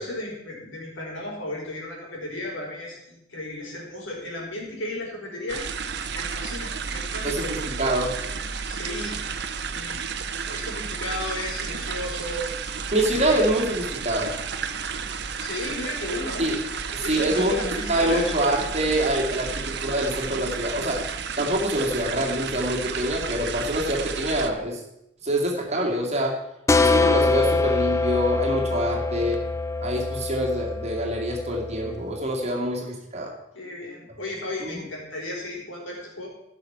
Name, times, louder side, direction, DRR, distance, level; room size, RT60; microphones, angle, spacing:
voice 1, 0.0-5.7 6.1-7.5 8.7-9.2 9.7-10.2 10.5-12.5 13.1-13.4 15.4-16.5 17.0-18.3 19.4-19.5 33.5-36.3, left 1 dB, 85° left, -1 dB, 4.1 m, -34 dB
sound 1, 5.5-24.5, right 5 dB, 60° right, 0.8 m, -32 dB
voice 2, 7.2-8.2 12.9-14.3 16.4-16.6 16.9-21.0 21.4-24.8 25.2-26.4 26.8-29.4 29.8-33.3 34.6-34.8, right 1 dB, 35° right, -1 dB, 2.4 m, -25 dB
sound 2, 26.7-32.1, left 3 dB, 15° left, 0.4 m, -24 dB
15.0 x 6.2 x 5.8 m, 0.83 s
head